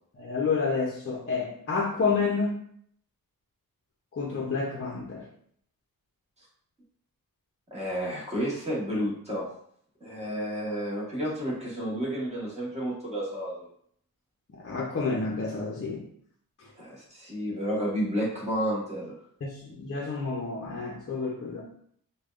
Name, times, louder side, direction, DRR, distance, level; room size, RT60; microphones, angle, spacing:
voice 1, 0.1-2.6 4.1-5.2 14.5-16.0 19.4-21.6, left 4 dB, 40° left, -3 dB, 0.7 m, -29 dB
voice 2, 7.7-9.5 10.0-13.7 16.7-19.2, equal, 20° right, -5 dB, 1.2 m, -31 dB
5.1 x 2.3 x 2.4 m, 0.65 s
wide cardioid pair, 130°, 36 cm